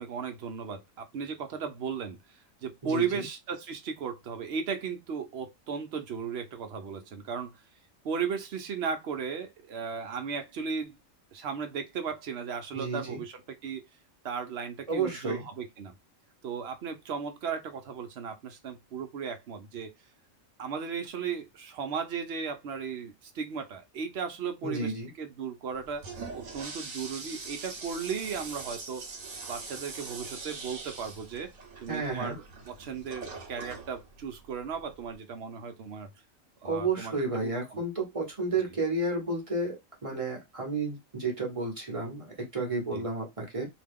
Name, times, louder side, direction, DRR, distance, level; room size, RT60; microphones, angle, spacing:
voice 1, 0.0-7.6 8.0-11.0 11.3-13.8 14.2-15.9 16.4-19.9 20.6-26.0 26.3-29.1 29.5-31.5 31.8-36.1 36.6-37.5 42.9-43.1, right 6 dB, 60° right, 0.8 m, -36 dB
voice 2, 2.8-3.2 12.7-13.2 14.9-15.5 24.6-25.1 31.9-32.4 36.6-43.7, right 3 dB, 30° right, 1.0 m, -32 dB
Toilet flush, 25.7-35.1, right 4 dB, 75° right, 1.3 m, -43 dB
2.9 x 2.2 x 3.5 m
omnidirectional pair, 1.4 m